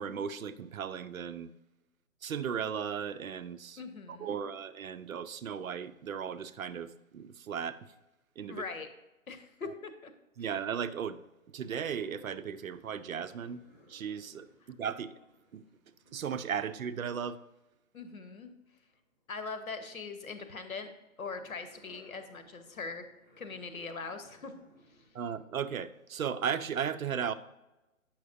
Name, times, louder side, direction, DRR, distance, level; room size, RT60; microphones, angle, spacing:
voice 1, 0.0-1.5 2.2-3.8 4.1-7.9 8.4-8.6 10.4-11.2 11.5-15.1 15.5-15.6 16.1-17.4 25.1-27.3, right 7 dB, 70° right, 13 dB, 0.6 m, -36 dB
voice 2, 3.8-4.4 8.5-8.9 9.3-10.1 17.9-18.5 19.3-20.9 21.2-23.0 23.4-24.5, left 4 dB, 75° left, 9 dB, 1.1 m, -41 dB
sound 1, 11.5-19.2 19.6-25.1 25.6-25.8, right 1 dB, 10° left, 0.9 m, -63 dB
8.5 x 5.9 x 2.6 m, 0.98 s
figure-of-eight pair, 140°, 42 cm